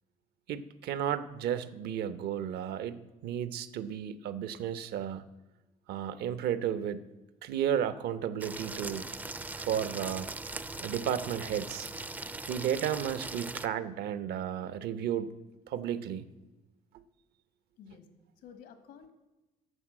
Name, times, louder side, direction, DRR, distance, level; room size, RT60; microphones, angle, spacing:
voice 1, 0.5-5.2 5.9-7.1 7.4-9.1 9.5-10.3 10.8-11.9 12.5-15.4 15.7-16.3, right 9 dB, 70° right, 14 dB, 0.7 m, -33 dB
sound 1, 8.4-13.7, right 2 dB, 10° right, 0.4 m, -40 dB
voice 2, 17.8-19.1, left 7 dB, 80° left, 9 dB, 1.6 m, -52 dB
11.0 x 6.7 x 7.4 m, 1.1 s
cardioid pair, 110°, 17 cm